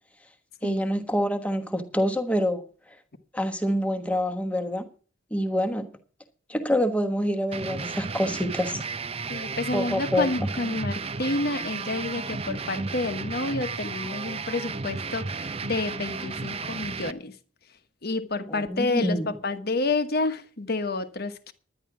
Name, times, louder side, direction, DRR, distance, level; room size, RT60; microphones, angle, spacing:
voice 1, 0.6-2.6 3.3-4.8 5.3-5.9 6.5-8.8 9.7-10.3 18.5-19.3, equal, 5° left, 1.3 m, -26 dB
sound 1, 7.5-17.1, right 4 dB, 30° right, 0.6 m, -33 dB
voice 2, 9.3-17.4 18.0-21.5, left 3 dB, 50° left, 1.1 m, -29 dB
10.5 x 10.5 x 6.0 m
head